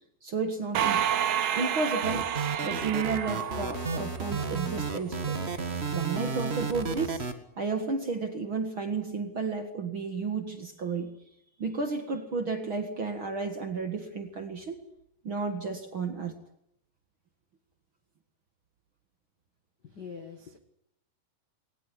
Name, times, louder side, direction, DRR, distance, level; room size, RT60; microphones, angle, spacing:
voice 1, 0.2-1.1 1.5-2.3 2.6-5.4 5.9-7.2 7.6-11.1 11.6-14.8 15.2-16.3, right 4 dB, 45° right, 7 dB, 1.9 m, -32 dB
sound 1, 0.7-4.4, right 10 dB, 65° right, 2.9 m, -29 dB
sound 2, 2.0-7.3, right 4 dB, 85° right, 0.5 m, -32 dB
voice 2, 19.9-20.6, left 6 dB, 50° left, 8 dB, 1.2 m, -43 dB
21.5 x 19.5 x 9.9 m, 0.75 s
omnidirectional pair, 4.4 m